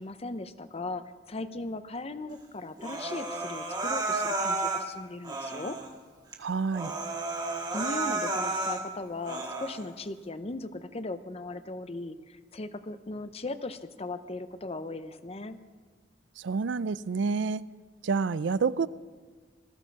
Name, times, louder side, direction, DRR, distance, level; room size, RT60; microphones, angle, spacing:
voice 1, 0.0-5.8 7.7-15.6, left 2 dB, 35° left, 12 dB, 0.8 m, -38 dB
Human voice, 2.8-4.9 5.2-5.9 6.3-6.4 6.7-8.8 9.2-9.8, right 3 dB, 25° right, 1.8 m, -32 dB
voice 2, 6.4-6.9 16.4-17.6 18.0-18.9, right 5 dB, 85° right, 18 dB, 0.4 m, -28 dB
20.0 x 14.5 x 4.7 m, 1.5 s
head